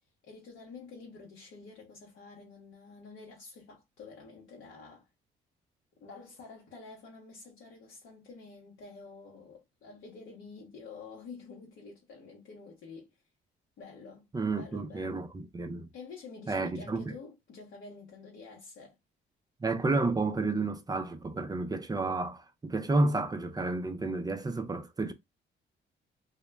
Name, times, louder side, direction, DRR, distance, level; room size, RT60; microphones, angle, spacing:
voice 1, 0.2-5.1 6.0-13.1 13.8-15.3 15.9-19.0, left 4 dB, 75° left, 0.8 m, -49 dB
voice 2, 14.3-15.9 16.5-17.1 19.6-25.1, right 3 dB, 20° right, 0.4 m, -31 dB
2.1 x 2.1 x 3.1 m
cardioid pair, 90°, 20 cm